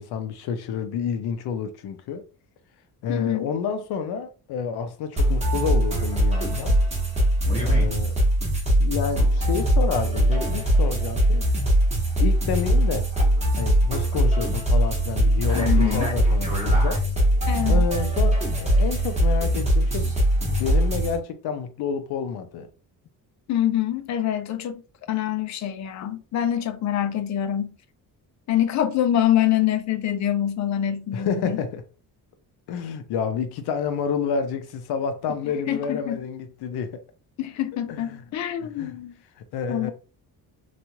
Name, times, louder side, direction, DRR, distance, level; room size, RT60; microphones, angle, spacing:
voice 1, 0.0-2.2 3.0-6.8 7.6-8.2 8.8-11.5 12.2-13.1 13.6-17.0 17.7-22.7 31.1-31.8 32.7-37.0 37.9-38.2 38.6-39.0 39.4-39.9, left 6 dB, 90° left, 0.7 m, -29 dB
voice 2, 3.1-3.5 15.6-16.1 17.5-17.8 23.5-24.8 25.1-27.7 28.5-31.6 35.7-36.2 37.4-39.1 39.7-39.9, left 11 dB, 50° left, 0.4 m, -25 dB
sound 1, 5.2-21.2, right 1 dB, 15° right, 1.0 m, -21 dB
3.1 x 2.4 x 2.7 m
cardioid pair, 170°, 37 cm